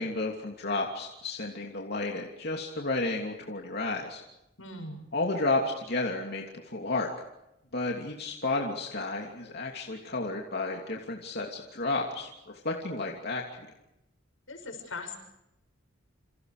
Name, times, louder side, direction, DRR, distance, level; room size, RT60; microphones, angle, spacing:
voice 1, 0.0-4.2 5.1-7.1 7.7-13.4, left 2 dB, 55° left, 0 dB, 3.0 m, -32 dB
voice 2, 4.6-5.1 14.5-15.2, left 3 dB, 85° left, 5 dB, 6.9 m, -40 dB
29.5 x 28.0 x 5.1 m, 0.87 s
head